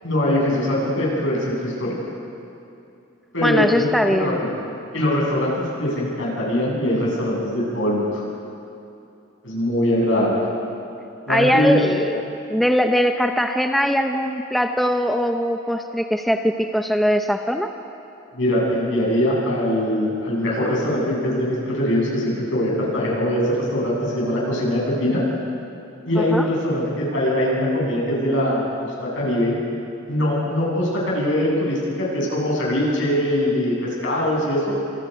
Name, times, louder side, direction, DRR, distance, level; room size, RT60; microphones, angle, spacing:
voice 1, 0.0-2.0 3.3-4.5 4.9-8.2 9.4-10.4 11.3-11.8 18.3-25.2 26.1-29.6 30.1-34.7, left 1 dB, 60° left, -3 dB, 7.9 m, -22 dB
voice 2, 3.4-4.4 11.3-12.2 12.5-17.7 26.2-26.5, equal, ahead, 4 dB, 0.8 m, -21 dB
28.5 x 27.0 x 5.3 m, 2.7 s
head